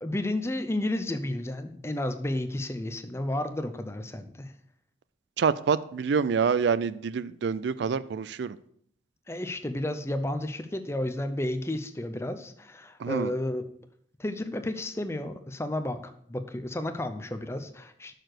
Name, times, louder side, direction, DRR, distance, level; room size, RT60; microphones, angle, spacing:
voice 1, 0.0-4.5 9.3-13.6 14.2-18.1, left 1 dB, 15° left, 9 dB, 0.6 m, -32 dB
voice 2, 5.4-8.6 13.0-13.3, right 6 dB, 75° right, 16 dB, 0.4 m, -26 dB
6.5 x 6.1 x 6.5 m, 0.66 s
head